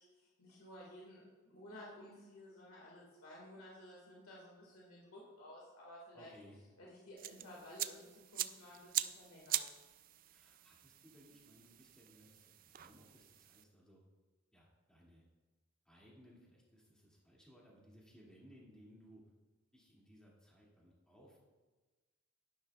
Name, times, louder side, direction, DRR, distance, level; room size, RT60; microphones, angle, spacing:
voice 1, 0.0-6.3 6.8-9.7, left 1 dB, 85° left, -4 dB, 2.0 m, -55 dB
voice 2, 6.1-6.6 10.3-14.0 14.5-15.2 15.8-19.2 19.7-21.4, equal, 5° left, -5 dB, 2.4 m, -62 dB
sound 1, 7.2-13.6, right 13 dB, 40° right, 0.3 m, -43 dB
11.0 x 11.0 x 2.4 m, 1.3 s
head